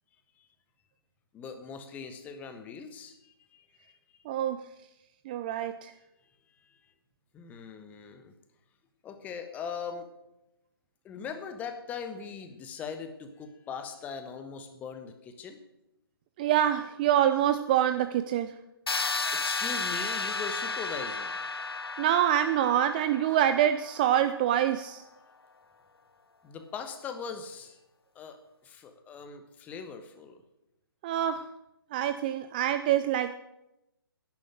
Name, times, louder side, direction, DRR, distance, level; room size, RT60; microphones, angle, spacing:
voice 1, 1.3-3.9 6.6-6.8 7.3-8.3 9.0-10.1 11.0-15.7 19.3-21.4 26.4-27.8 28.1-30.4, left 6 dB, 10° left, 8 dB, 1.2 m, -40 dB
voice 2, 4.3-4.6 5.3-5.9 16.4-18.5 22.0-25.0 31.0-31.5 31.9-33.3, right 11 dB, 20° right, 11 dB, 0.5 m, -26 dB
sound 1, 18.9-24.7, left 3 dB, 80° left, 0.8 m, -33 dB
10.5 x 10.5 x 8.9 m, 0.91 s
figure-of-eight pair, 140°, 13 cm